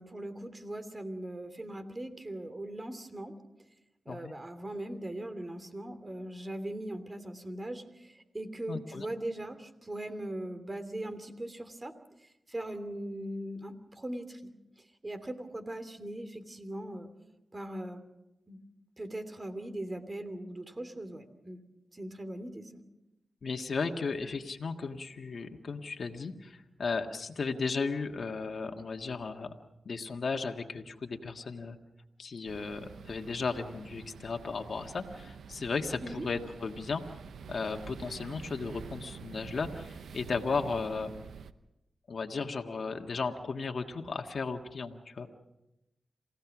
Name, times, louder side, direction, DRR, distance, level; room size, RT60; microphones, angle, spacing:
voice 1, 0.0-3.4 4.0-11.9 12.2-14.5 14.8-17.1 17.5-18.0 18.5-18.6 19.0-21.6 21.9-22.8 36.0-36.2, right 1 dB, 35° right, 9 dB, 3.0 m, -40 dB
voice 2, 8.7-9.1 23.4-29.5 29.9-31.8 32.2-37.0 37.5-41.1 42.1-45.3, left 4 dB, 65° left, 4 dB, 1.6 m, -35 dB
sound 1, 32.5-41.5, right 6 dB, 85° right, 0.7 m, -47 dB
28.0 x 16.0 x 6.1 m, 0.91 s
cardioid pair, 40°, 0 cm